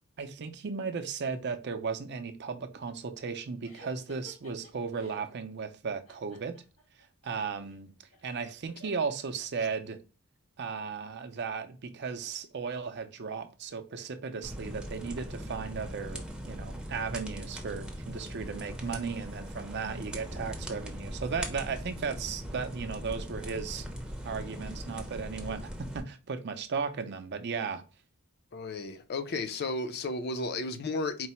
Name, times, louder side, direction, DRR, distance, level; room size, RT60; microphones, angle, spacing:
voice 1, 0.2-6.6 7.2-7.9 8.2-10.0 10.6-23.9 24.2-27.8, right 5 dB, 50° right, 0.5 m, -36 dB
sound 1, 3.6-5.4 6.1-9.7, equal, 85° left, 2.1 m, -56 dB
sound 2, 14.4-26.0, equal, 5° right, 0.6 m, -40 dB
voice 2, 28.5-31.3, left 3 dB, 45° left, 0.5 m, -33 dB
4.6 x 2.0 x 4.2 m
head